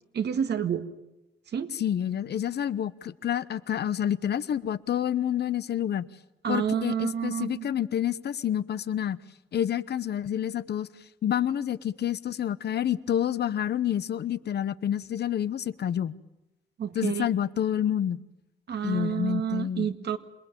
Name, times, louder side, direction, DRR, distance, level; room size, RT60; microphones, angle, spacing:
voice 1, 0.1-0.8 1.5-1.7 6.4-7.7 16.8-17.3 18.7-20.2, right 8 dB, 55° right, 9 dB, 1.9 m, -29 dB
voice 2, 1.8-6.1 6.5-9.2 9.5-10.9 11.2-16.1 16.9-18.2 18.8-19.9, left 10 dB, 55° left, 15 dB, 1.0 m, -28 dB
27.5 x 19.0 x 9.1 m, 0.94 s
cardioid pair, 90°, 20 cm